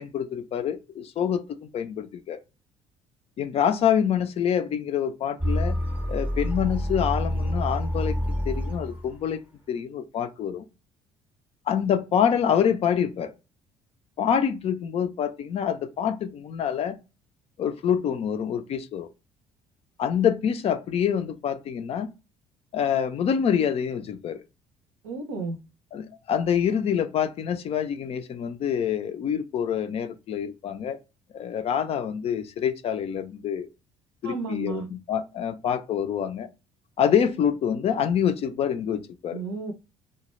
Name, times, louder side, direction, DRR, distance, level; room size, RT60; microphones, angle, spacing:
voice 1, 0.0-2.4 3.4-5.8 6.1-9.4 9.7-10.7 11.7-13.3 14.2-17.0 17.6-19.1 20.0-22.1 22.7-24.4 25.9-31.0 31.3-33.7 34.2-36.5 37.0-39.4, left 8 dB, 35° left, 0.4 m, -26 dB
sound 1, 5.4-9.2, equal, 10° right, 0.7 m, -27 dB
voice 2, 25.0-25.6 34.2-34.9 39.3-39.7, right 3 dB, 70° right, 0.6 m, -32 dB
2.2 x 2.1 x 3.0 m
figure-of-eight pair, 50°, 17 cm